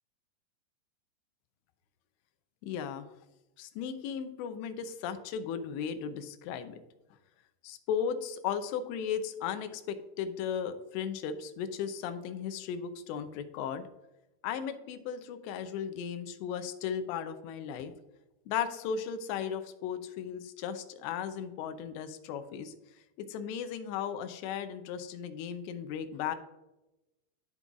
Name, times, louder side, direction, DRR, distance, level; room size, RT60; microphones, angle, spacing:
voice 1, 2.6-3.1 3.6-6.8 7.6-13.9 14.4-17.9 18.5-22.7 23.2-26.4, left 8 dB, 85° left, 9 dB, 2.8 m, -36 dB
12.0 x 5.3 x 2.4 m, 0.96 s
omnidirectional pair, 5.1 m